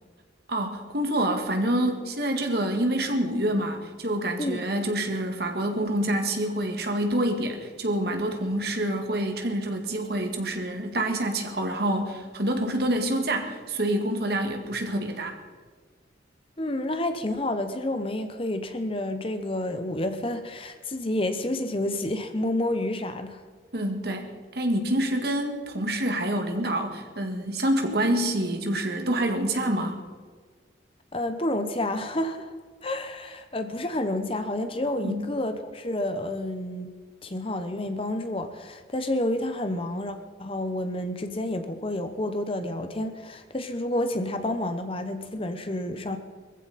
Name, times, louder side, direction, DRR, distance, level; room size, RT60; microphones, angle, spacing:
voice 1, 0.5-15.4 23.7-30.0 35.0-35.3, right 1 dB, 55° right, 5 dB, 1.9 m, -27 dB
voice 2, 4.4-4.7 16.6-23.4 31.1-32.5 32.8-36.9 37.2-46.2, left 1 dB, 30° left, 8 dB, 0.9 m, -29 dB
21.0 x 15.0 x 4.2 m, 1.5 s
head